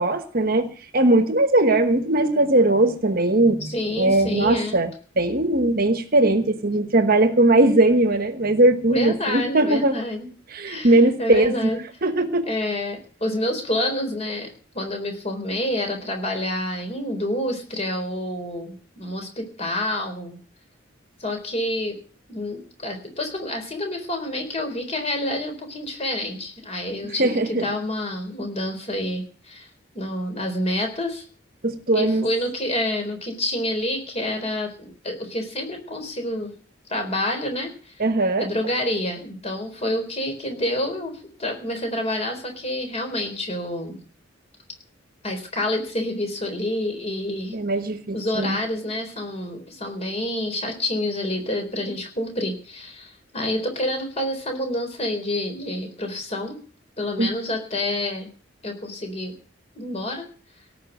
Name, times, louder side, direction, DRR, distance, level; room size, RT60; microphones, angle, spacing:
voice 1, 0.0-3.7 4.0-10.0 10.5-11.7 12.0-12.5 27.2-27.7 31.6-32.3 38.0-38.5 47.5-48.6 57.2-57.3, right 2 dB, 50° right, 9 dB, 1.3 m, -19 dB
voice 2, 3.6-4.8 8.9-10.3 10.7-11.8 12.5-20.4 21.2-22.0 22.3-29.7 29.9-31.2 31.9-36.5 36.9-37.9 38.4-44.0 45.2-47.6 48.1-56.6 57.0-58.3 58.6-59.3 59.7-60.3, left 1 dB, 35° left, 4 dB, 4.0 m, -28 dB
18.0 x 6.1 x 9.1 m, 0.41 s
head